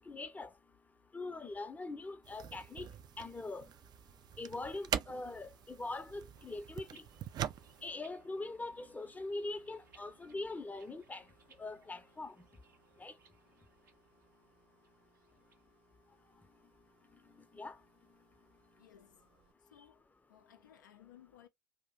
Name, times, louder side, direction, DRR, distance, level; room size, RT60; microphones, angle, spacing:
voice 1, 0.1-0.5 1.1-2.9 3.2-3.7 4.4-7.0 7.8-11.2 11.6-12.3 13.0-13.1 17.5-17.8, left 2 dB, 15° left, 0.5 m, -42 dB
sound 1, 2.2-7.9, right 9 dB, 45° right, 0.3 m, -43 dB
sound 2, 4.7-19.5, right 3 dB, 65° right, 1.0 m, -74 dB
sound 3, 6.3-15.6, right 5 dB, 85° right, 0.6 m, -66 dB
voice 2, 18.8-19.3 19.6-21.5, left 11 dB, 85° left, 0.4 m, -60 dB
2.5 x 2.1 x 3.5 m
figure-of-eight pair, 55°, 10 cm